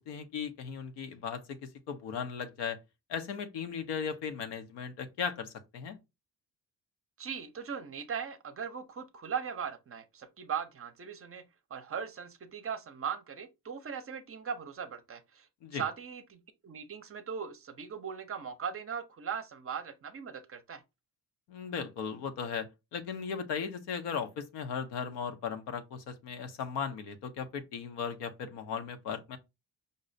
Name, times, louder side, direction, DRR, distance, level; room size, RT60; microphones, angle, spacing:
voice 1, 0.0-2.8 3.1-6.0 15.6-15.8 21.5-29.4, left 6 dB, 85° left, 0.7 m, -37 dB
voice 2, 7.2-11.4 11.7-15.5 15.7-20.8, right 7 dB, 35° right, 0.5 m, -39 dB
5.1 x 2.1 x 2.5 m
supercardioid pair, 75°, 41 cm